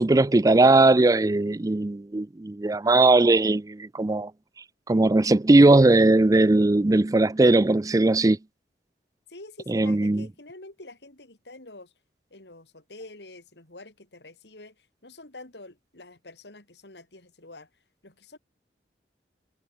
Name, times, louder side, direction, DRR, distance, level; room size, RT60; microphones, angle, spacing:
voice 1, 0.0-4.3 4.9-8.4 9.7-10.3, right 2 dB, 20° right, 0.4 m, -19 dB
voice 2, 9.3-11.9 12.3-17.7 18.0-18.4, left 2 dB, 75° left, 3.7 m, -47 dB
head